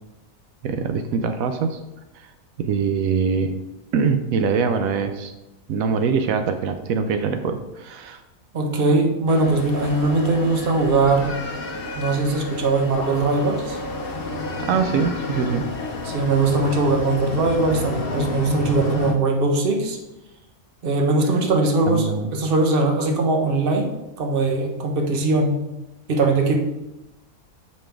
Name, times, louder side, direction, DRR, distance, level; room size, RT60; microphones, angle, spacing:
voice 1, 0.6-1.8 2.1-2.3 2.6-3.6 3.9-5.3 5.7-8.2 14.6-15.7 21.8-22.3, right 5 dB, 85° right, 8 dB, 1.0 m, -23 dB
voice 2, 8.5-11.3 12.0-13.8 16.0-20.0 20.8-23.9 24.2-25.6 26.1-26.5, right 3 dB, 45° right, 2 dB, 1.1 m, -20 dB
sound 1, 9.3-19.1, left 2 dB, 45° left, 1.0 m, -30 dB
7.5 x 5.5 x 3.4 m, 0.97 s
omnidirectional pair, 1.4 m